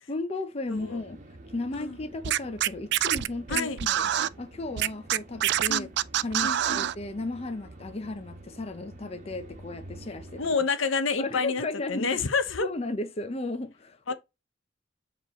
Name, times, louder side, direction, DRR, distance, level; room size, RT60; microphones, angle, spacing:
voice 1, 0.1-1.2 1.5-4.1 4.4-5.9 6.2-10.4 11.2-12.2 12.6-14.1, left 2 dB, 30° left, 0.6 m, -35 dB
sound 1, 0.7-10.6, right 1 dB, 40° right, 1.3 m, -48 dB
Scratching (performance technique), 2.2-4.3 4.8-7.0, right 11 dB, 60° right, 0.3 m, -25 dB
voice 2, 6.4-6.9 10.4-12.7 14.1-14.2, left 4 dB, 80° left, 0.9 m, -29 dB
7.2 x 3.1 x 4.2 m
head